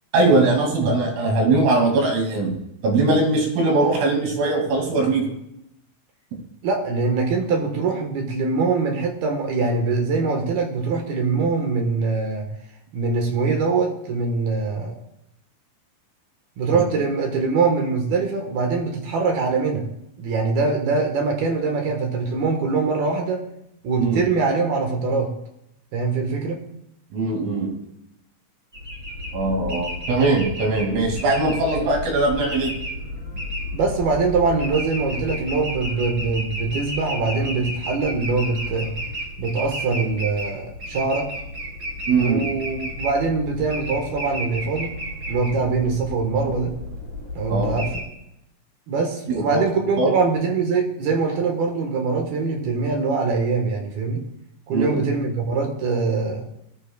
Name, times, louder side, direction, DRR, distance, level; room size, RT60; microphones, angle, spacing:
voice 1, 0.1-2.5 2.8-5.3 24.0-24.2 27.1-27.7 29.3-32.7 42.1-42.4 47.5-47.8 49.3-49.6 50.0-50.1 54.7-55.0, right 2 dB, 80° right, 0 dB, 5.4 m, -20 dB
voice 2, 6.6-12.5 12.9-15.0 16.6-19.8 20.2-23.4 23.8-25.3 25.9-26.6 33.7-38.9 39.4-41.3 42.2-44.9 45.3-46.7 47.3-47.9 48.9-54.2 54.7-56.4, right 4 dB, 60° right, 2 dB, 2.9 m, -23 dB
sound 1, 28.7-48.0, left 1 dB, 25° right, 3.5 m, -32 dB
20.0 x 14.0 x 2.4 m, 0.81 s
omnidirectional pair, 5.8 m